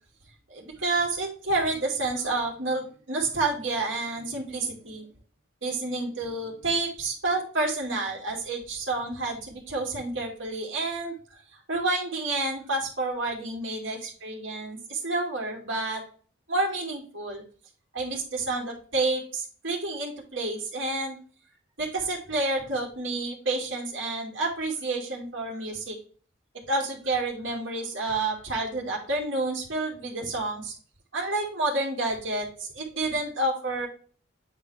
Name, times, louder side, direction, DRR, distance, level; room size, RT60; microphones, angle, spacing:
voice 1, 0.5-5.0 5.6-11.1 11.7-16.0 16.5-17.4 17.9-21.2 21.8-26.0 26.5-30.7 31.1-33.9, right 2 dB, 65° right, -2 dB, 2.5 m, -29 dB
8.9 x 3.9 x 3.3 m, 0.42 s
head